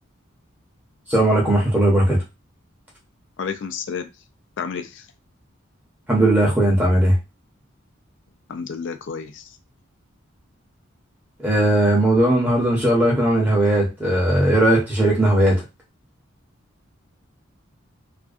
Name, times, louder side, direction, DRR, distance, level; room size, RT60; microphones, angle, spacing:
voice 1, 1.1-2.2 6.1-7.2 11.4-15.6, right 1 dB, 10° right, -3 dB, 0.8 m, -18 dB
voice 2, 3.4-4.1 4.6-5.0 8.5-9.4, left 6 dB, 60° left, 8 dB, 0.4 m, -30 dB
2.4 x 2.2 x 2.4 m, 0.25 s
head